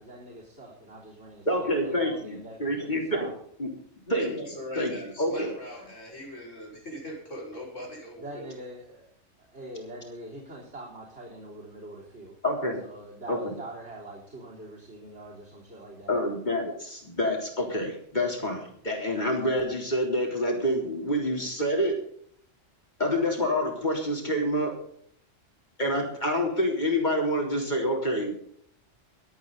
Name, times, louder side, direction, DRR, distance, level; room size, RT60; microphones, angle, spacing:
voice 1, 0.0-3.3 8.2-9.1 9.5-12.4 12.8-16.2 25.8-26.0, right 1 dB, 60° right, -4 dB, 4.1 m, -44 dB
voice 2, 1.5-3.3 3.6-3.7 4.1-5.5 12.4-12.8 13.3-13.5 16.1-22.0 23.0-24.7 25.8-28.3, equal, 35° left, 0 dB, 3.9 m, -27 dB
voice 3, 4.2-8.5, equal, 75° left, -2 dB, 5.7 m, -40 dB
23.0 x 8.9 x 4.0 m, 0.64 s
omnidirectional pair, 1.3 m